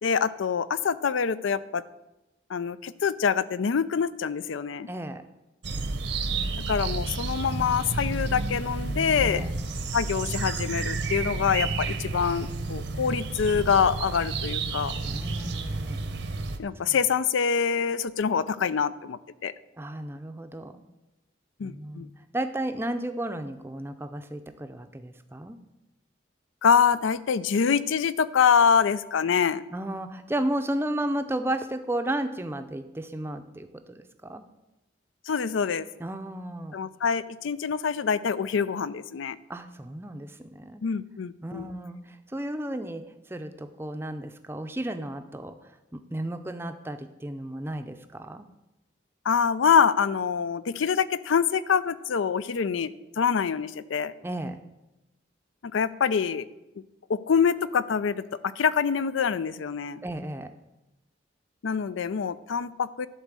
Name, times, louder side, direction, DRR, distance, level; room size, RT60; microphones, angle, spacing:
voice 1, 0.0-1.8 2.5-4.9 6.7-9.4 9.9-14.9 16.6-19.5 21.6-22.1 26.6-29.6 35.3-35.9 36.7-39.4 40.8-41.7 49.3-54.1 55.6-56.4 57.1-58.2 58.6-60.0 61.6-63.1, left 6 dB, 85° left, 16 dB, 0.4 m, -25 dB
voice 2, 4.9-5.2 9.2-9.5 15.0-16.1 16.8-17.0 19.8-20.8 21.6-25.6 29.7-34.4 36.0-36.8 39.5-40.8 41.4-45.6 45.9-48.5 54.2-54.6 60.0-60.5, right 1 dB, 10° right, 8 dB, 0.5 m, -33 dB
sound 1, 5.6-16.6, right 3 dB, 65° right, 0.8 m, -31 dB
11.5 x 4.1 x 7.4 m, 0.97 s
head